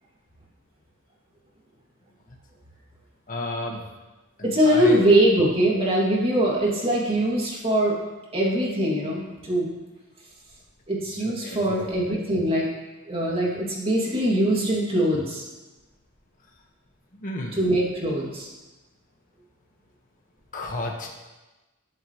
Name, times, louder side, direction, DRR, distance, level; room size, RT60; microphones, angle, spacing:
voice 1, 3.3-3.8 4.4-5.0 11.1-11.8 17.2-17.6 20.5-21.1, left 2 dB, 40° left, 0 dB, 1.8 m, -32 dB
voice 2, 4.4-8.0 8.3-9.7 10.9-12.7 13.1-15.4 17.5-18.5, right 1 dB, 30° right, -4 dB, 2.9 m, -22 dB
20.5 x 7.8 x 3.3 m, 1.1 s
head